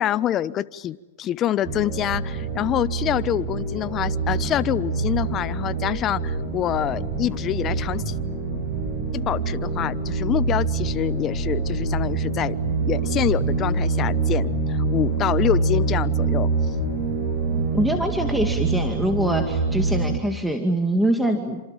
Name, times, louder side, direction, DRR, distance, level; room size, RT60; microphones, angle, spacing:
voice 1, 0.0-8.1 9.1-12.5 12.8-16.5, left 11 dB, 30° left, 15 dB, 1.0 m, -26 dB
sound 1, 1.7-20.2, right 4 dB, 30° right, 7.9 m, -25 dB
voice 2, 17.5-21.6, right 1 dB, ahead, 4 dB, 2.2 m, -24 dB
29.5 x 26.5 x 7.5 m, 1.1 s
hypercardioid pair, 130°, 0 cm